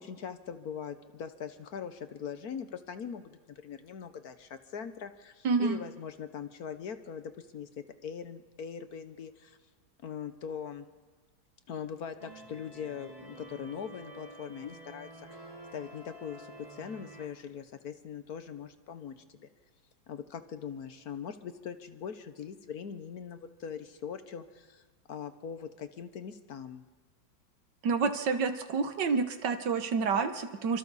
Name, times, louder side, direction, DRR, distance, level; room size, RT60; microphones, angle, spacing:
voice 1, 0.0-9.6 10.0-10.9 11.7-15.4 15.7-19.5 20.1-24.8 25.1-26.8, left 7 dB, 60° left, 10 dB, 1.3 m, -41 dB
voice 2, 5.4-5.8 27.8-30.8, right 5 dB, 70° right, 9 dB, 1.8 m, -28 dB
sound 1, 12.2-17.3, right 1 dB, 20° right, 2.0 m, -49 dB
28.0 x 24.5 x 4.1 m, 1.4 s
omnidirectional pair, 2.0 m